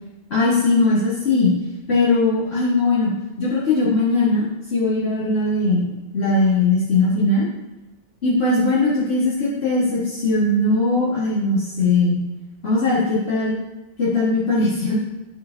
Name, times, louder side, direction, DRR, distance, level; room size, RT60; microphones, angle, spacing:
voice 1, 0.3-1.5 1.9-3.1 3.4-4.5 4.7-5.9 6.1-7.5 8.2-12.2 12.6-13.5 14.0-15.0, left 2 dB, 85° left, -10 dB, 2.1 m, -19 dB
12.5 x 4.8 x 4.0 m, 1.0 s
omnidirectional pair, 1.0 m